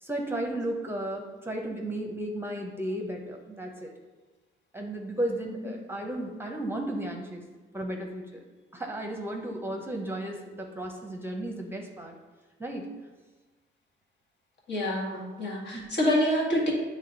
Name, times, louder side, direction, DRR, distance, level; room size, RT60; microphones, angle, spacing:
voice 1, 0.0-3.9 4.7-7.5 7.7-8.4 8.7-12.1 12.6-12.9 15.7-15.9, right 1 dB, 10° right, 2 dB, 0.8 m, -34 dB
voice 2, 5.4-5.8 14.7-16.7, equal, 60° left, -3 dB, 1.9 m, -27 dB
8.4 x 3.1 x 3.9 m, 1.3 s
cardioid pair, 90°, 20 cm